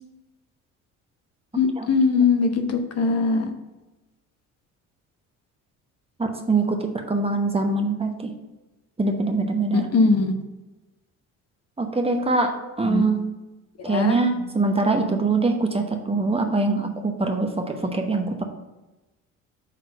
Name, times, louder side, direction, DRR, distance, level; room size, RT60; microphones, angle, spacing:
voice 1, 1.5-3.5 9.7-10.3 12.8-13.0 13.8-14.2, left 4 dB, 35° left, 6 dB, 1.0 m, -21 dB
voice 2, 6.2-8.1 9.0-9.9 11.8-13.3 13.8-18.4, right 3 dB, 15° right, 4 dB, 0.9 m, -23 dB
6.5 x 3.7 x 5.5 m, 1.1 s
figure-of-eight pair, 50°, 44 cm